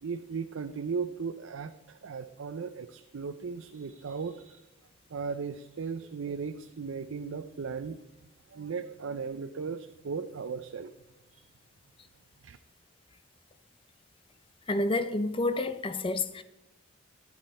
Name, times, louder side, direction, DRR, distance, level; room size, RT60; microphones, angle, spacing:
voice 1, 0.0-4.6 5.1-10.9 11.3-11.4 12.4-12.6, right 5 dB, 85° right, 0.5 m, -37 dB
voice 2, 14.7-16.4, left 2 dB, 25° left, 0.6 m, -29 dB
11.0 x 8.8 x 4.2 m
head